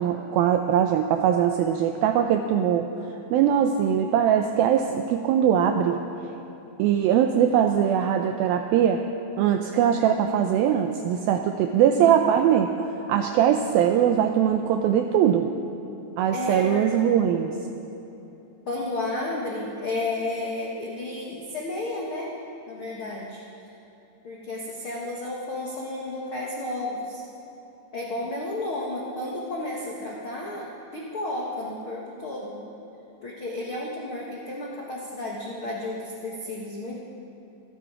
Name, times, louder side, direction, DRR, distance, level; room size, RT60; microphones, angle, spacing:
voice 1, 0.0-2.9 3.3-6.0 6.8-9.0 9.4-12.7 13.1-15.5 16.2-17.6, right 9 dB, 85° right, 5 dB, 2.1 m, -21 dB
voice 2, 11.6-12.2 16.3-16.9 18.7-22.3 22.7-23.4 24.2-27.2 27.9-32.6 33.2-37.0, left 2 dB, 80° left, -3 dB, 1.1 m, -32 dB
26.0 x 11.0 x 4.8 m, 3.0 s
omnidirectional pair, 4.9 m